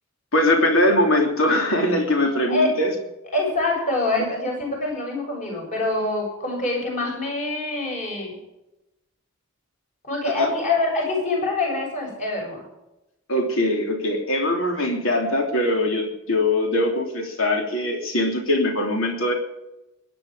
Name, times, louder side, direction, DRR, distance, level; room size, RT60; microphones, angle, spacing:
voice 1, 0.3-2.9 10.4-10.5 13.3-19.3, left 1 dB, 80° left, 2 dB, 3.1 m, -21 dB
voice 2, 3.3-8.4 10.0-12.6, left 2 dB, 35° left, -1 dB, 7.3 m, -25 dB
21.0 x 10.0 x 5.0 m, 0.94 s
head